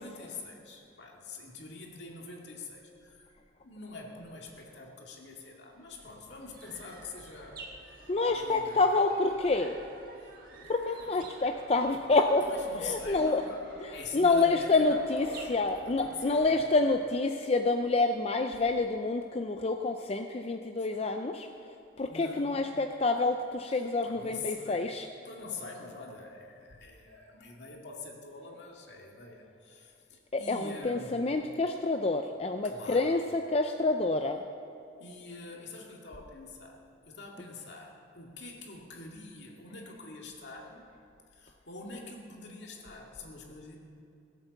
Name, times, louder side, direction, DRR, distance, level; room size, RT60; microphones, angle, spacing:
voice 1, 0.0-3.3 3.6-8.8 10.2-10.7 11.0-11.1 12.4-13.6 13.9-16.7 22.1-22.7 23.7-24.9 25.2-31.3 32.6-33.2 35.0-40.9 41.3-43.8, left 3 dB, 65° left, -1 dB, 2.2 m, -45 dB
sound 1, 5.6-17.2, right 2 dB, 50° right, 1.5 m, -51 dB
voice 2, 8.1-9.8 10.7-12.5 12.9-13.4 13.8-21.5 22.0-25.1 30.3-34.4, left 3 dB, 35° left, 5 dB, 0.4 m, -28 dB
17.0 x 8.3 x 7.0 m, 2.6 s
head